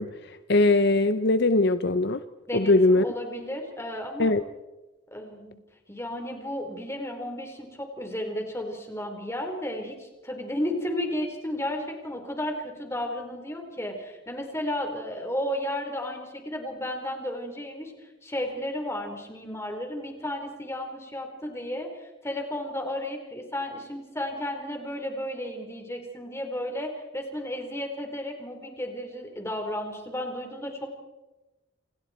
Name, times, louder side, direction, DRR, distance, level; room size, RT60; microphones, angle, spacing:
voice 1, 0.0-2.2 2.5-3.1 4.2-4.4, left 2 dB, 55° left, 10 dB, 0.8 m, -21 dB
voice 2, 2.5-4.3 5.1-5.6 5.9-17.9 18.2-21.9 22.2-30.9, left 1 dB, 15° left, 3 dB, 4.5 m, -33 dB
29.5 x 27.5 x 4.5 m, 1.1 s
head